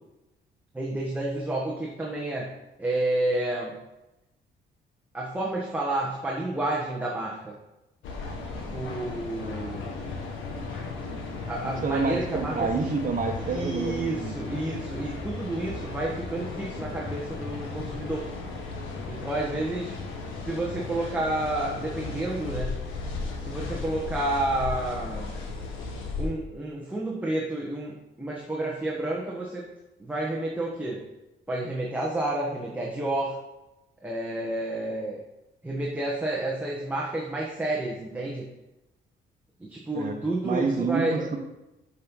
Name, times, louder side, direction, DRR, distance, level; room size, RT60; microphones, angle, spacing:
voice 1, 0.7-2.5 2.8-3.8 5.1-7.5 8.7-9.9 11.5-12.9 13.4-18.3 19.1-20.0 20.5-22.8 23.4-25.3 26.2-29.7 30.0-31.0 31.5-33.4 34.0-35.2 35.6-38.5 39.6-41.3, right 2 dB, 10° right, -4 dB, 1.5 m, -30 dB
sound 1, 8.0-26.3, left 3 dB, 90° left, 1.5 m, -35 dB
voice 2, 11.8-14.3 39.9-40.1 40.4-41.4, right 4 dB, 40° right, 4 dB, 1.4 m, -28 dB
7.5 x 5.7 x 5.5 m, 0.97 s
cardioid pair, 90°, 20 cm